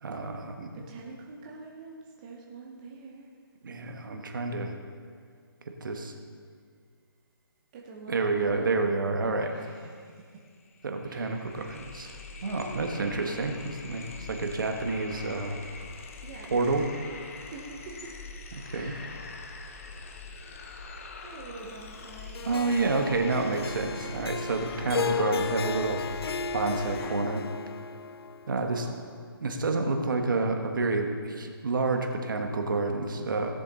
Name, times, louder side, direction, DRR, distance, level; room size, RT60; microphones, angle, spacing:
voice 1, 0.0-0.7 3.6-4.7 5.7-6.1 8.1-9.5 10.8-12.1 12.4-15.5 16.5-16.9 18.6-18.9 22.4-26.0 26.5-27.5 28.5-28.9 29.4-33.5, right 3 dB, 55° right, 4 dB, 1.2 m, -29 dB
voice 2, 0.7-3.3 7.7-8.8 9.2-10.5 11.1-11.6 12.4-13.4 16.2-17.0 17.4-18.2 18.7-19.8 21.2-22.5 28.5-29.1, right 3 dB, 20° right, -2 dB, 0.7 m, -47 dB
sound 1, 10.1-10.2 10.5-27.1, left 3 dB, 35° left, 0.8 m, -44 dB
Harp, 22.3-28.7, left 6 dB, 80° left, 0.5 m, -34 dB
16.0 x 7.0 x 4.0 m, 2.1 s
hypercardioid pair, 170°, 13 cm